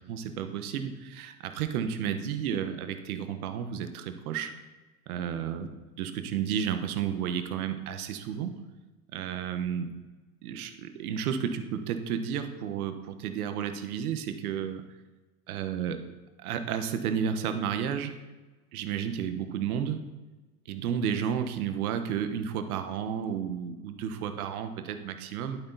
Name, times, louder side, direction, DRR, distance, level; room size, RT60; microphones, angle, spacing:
voice 1, 0.1-4.5 5.1-5.7 6.0-8.6 9.1-9.9 10.4-14.8 15.5-16.0 16.4-18.1 18.7-20.1 20.7-25.6, right 8 dB, 75° right, 8 dB, 1.3 m, -32 dB
11.5 x 8.6 x 4.1 m, 1.2 s
supercardioid pair, 110°, 44 cm